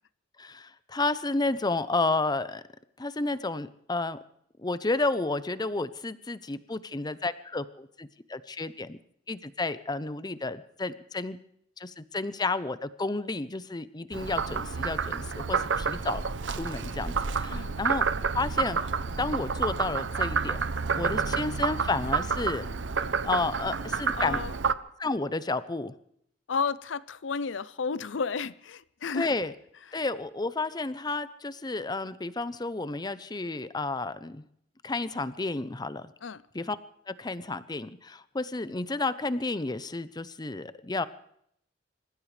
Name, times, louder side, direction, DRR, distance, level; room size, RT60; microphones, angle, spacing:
voice 1, 0.4-2.6 3.0-4.2 4.6-9.0 9.3-11.4 11.8-18.0 18.3-18.9 19.2-20.6 21.0-22.7 23.2-24.4 25.0-25.9 29.1-29.5 29.9-34.4 34.8-36.1 36.5-36.8 37.1-41.0, left 3 dB, 20° left, 0.7 m, -31 dB
Frog, 14.1-24.7, right 5 dB, 75° right, 0.7 m, -29 dB
voice 2, 24.1-24.6 26.5-29.3 29.9-30.0 36.2-36.4, left 5 dB, 85° left, 0.6 m, -32 dB
27.5 x 15.5 x 3.3 m
head